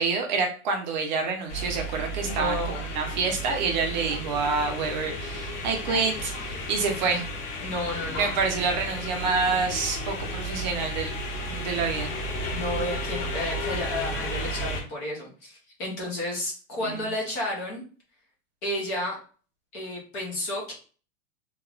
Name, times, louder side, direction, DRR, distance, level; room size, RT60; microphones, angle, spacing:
voice 1, 0.0-2.6 2.9-7.2 8.2-11.2 11.5-12.1 16.8-16.9, right 4 dB, 35° right, 3 dB, 0.6 m, -27 dB
sound 1, 1.5-14.8, equal, 55° left, 1.3 m, -33 dB
voice 2, 2.2-2.9 7.6-8.3 12.5-17.8 18.6-19.2 19.7-20.7, left 1 dB, 15° left, -2 dB, 0.5 m, -32 dB
3.4 x 2.9 x 2.3 m, 0.39 s
supercardioid pair, 170°, 43 cm